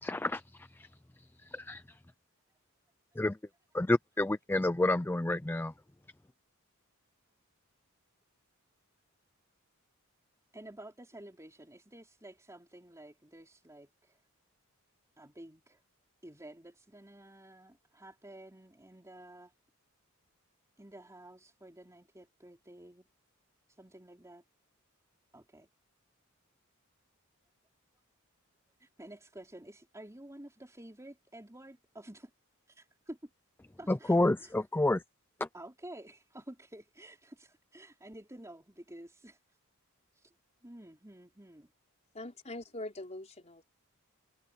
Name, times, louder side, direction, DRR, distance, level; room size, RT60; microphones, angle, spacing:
voice 1, 0.0-0.9 1.4-1.8 3.2-3.4 3.7-5.7 33.9-35.0 35.4-35.5, left 2 dB, 10° left, 0.4 m, -29 dB
voice 2, 10.5-14.2 15.2-15.8 16.2-19.5 20.8-23.1 23.7-24.4 25.3-25.7 28.8-32.3 32.8-33.2 33.8-34.5 35.5-39.4 40.1-40.3 40.6-41.7, right 1 dB, 15° right, 4.2 m, -51 dB
voice 3, 42.1-43.7, left 2 dB, 30° left, 4.4 m, -43 dB
head